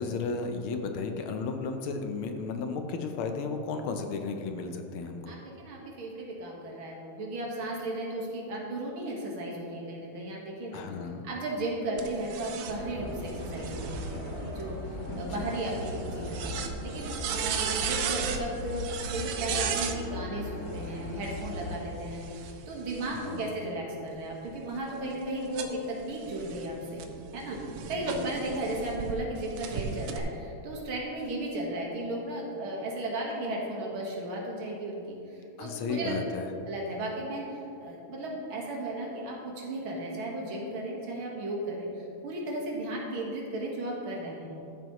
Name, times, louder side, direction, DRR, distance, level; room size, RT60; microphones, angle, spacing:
voice 1, 0.0-5.3 10.7-11.3 15.1-15.5 23.1-23.5 27.9-28.3 35.6-36.5, left 4 dB, 75° left, 5 dB, 1.5 m, -34 dB
voice 2, 5.3-10.8 11.2-14.8 15.1-16.5 16.8-27.1 27.3-27.6 27.9-36.1 36.7-44.6, right 1 dB, 70° right, -2 dB, 2.3 m, -35 dB
sound 1, 12.0-20.0 21.1-23.5 24.1-29.1 29.6-30.2, right 7 dB, 90° right, 1.6 m, -37 dB
sound 2, 12.7-21.8, left 1 dB, 40° left, 1.1 m, -38 dB
13.5 x 7.1 x 3.0 m, 2.8 s
omnidirectional pair, 2.4 m